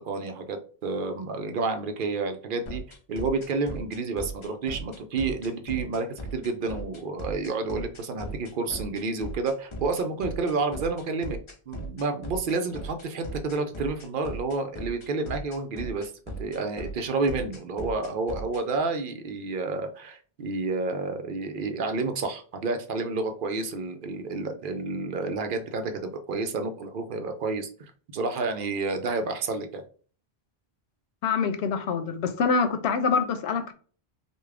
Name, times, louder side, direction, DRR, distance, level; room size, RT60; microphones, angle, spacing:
voice 1, 0.0-2.8 3.1-11.4 11.7-16.1 16.4-27.7 28.1-29.8, right 3 dB, 65° right, 0.7 m, -30 dB
sound 1, 2.7-18.6, right 1 dB, 35° left, 0.6 m, -37 dB
voice 2, 31.2-33.7, left 5 dB, 85° left, 0.8 m, -25 dB
3.5 x 2.3 x 3.3 m
omnidirectional pair, 1.0 m